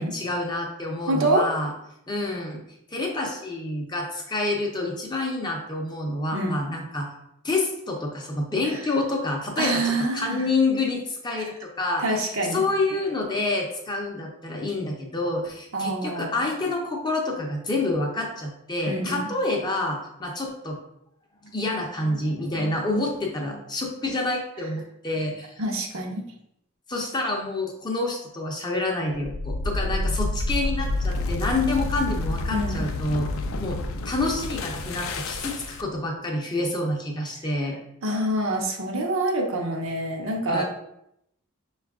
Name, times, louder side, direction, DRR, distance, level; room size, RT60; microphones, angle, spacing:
voice 1, 0.0-1.7 2.1-2.6 2.9-7.1 7.4-12.0 12.5-20.8 21.4-25.6 26.9-33.3 33.6-33.8 34.0-37.8 40.5-40.6, left 2 dB, 20° left, 0 dB, 0.6 m, -28 dB
voice 2, 1.1-1.5 6.3-6.6 8.7-8.8 9.6-10.4 12.0-12.6 15.7-16.3 18.9-19.3 25.6-26.2 32.5-32.8 38.0-40.6, right 1 dB, 65° right, 1 dB, 0.7 m, -26 dB
sound 1, 29.2-36.0, left 2 dB, 65° left, 0.4 m, -29 dB
5.5 x 2.4 x 3.5 m, 0.79 s
head